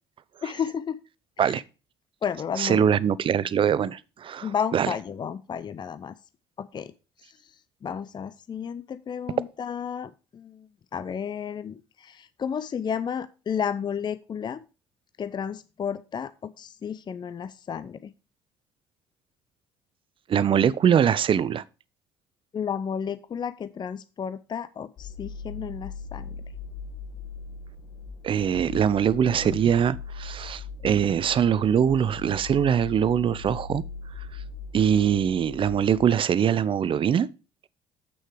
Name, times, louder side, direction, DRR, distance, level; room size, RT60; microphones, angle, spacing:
voice 1, 0.4-1.0 1.4-1.6 2.2-2.9 4.4-6.1 6.6-6.9 7.2-7.4 7.8-14.6 15.2-18.1 22.5-26.3, left 7 dB, 35° left, 0.6 m, -32 dB
voice 2, 2.6-4.9 20.3-21.6 28.2-33.8 34.7-37.3, right 8 dB, 45° right, 0.6 m, -23 dB
sound 1, 25.0-36.1, left 4 dB, 55° left, 1.2 m, -39 dB
7.9 x 6.3 x 4.8 m
hypercardioid pair, 60°, 13 cm